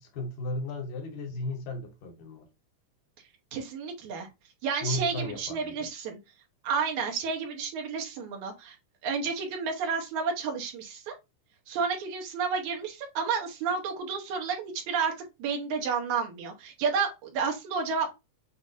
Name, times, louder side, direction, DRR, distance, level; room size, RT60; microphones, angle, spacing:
voice 1, 0.0-2.5 4.8-5.9, left 1 dB, 85° left, 2.7 m, -35 dB
voice 2, 3.5-4.3 4.6-6.2 6.6-8.8 9.0-11.1 11.7-15.1 15.4-18.1, right 5 dB, 75° right, 2.2 m, -31 dB
7.3 x 2.5 x 2.5 m
omnidirectional pair, 3.7 m